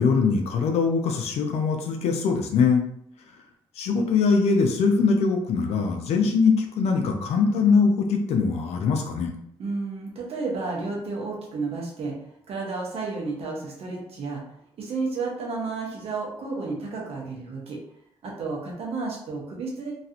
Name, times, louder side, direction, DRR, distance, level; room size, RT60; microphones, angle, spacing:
voice 1, 0.0-2.8 3.8-9.3, left 5 dB, 80° left, 3 dB, 0.6 m, -22 dB
voice 2, 9.6-12.1 12.5-14.4 14.8-17.8 18.2-19.9, right 3 dB, 70° right, -2 dB, 1.1 m, -31 dB
3.1 x 2.5 x 2.8 m, 0.70 s
cardioid pair, 80°, 11 cm